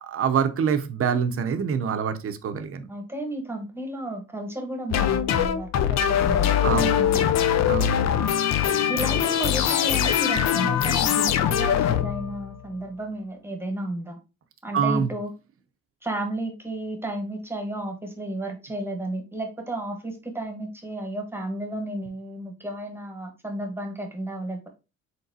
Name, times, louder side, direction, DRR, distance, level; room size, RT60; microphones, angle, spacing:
voice 1, 0.0-2.9 6.6-7.3 7.6-8.3 14.7-15.1, right 7 dB, 50° right, 9 dB, 0.6 m, -26 dB
voice 2, 2.9-7.7 8.9-14.2 14.6-15.3 16.0-24.7, right 1 dB, 10° right, 3 dB, 1.1 m, -33 dB
sound 1, 4.9-12.6, left 9 dB, 60° left, 0.5 m, -22 dB
3.9 x 3.8 x 2.7 m, 0.29 s
cardioid pair, 90°, 30 cm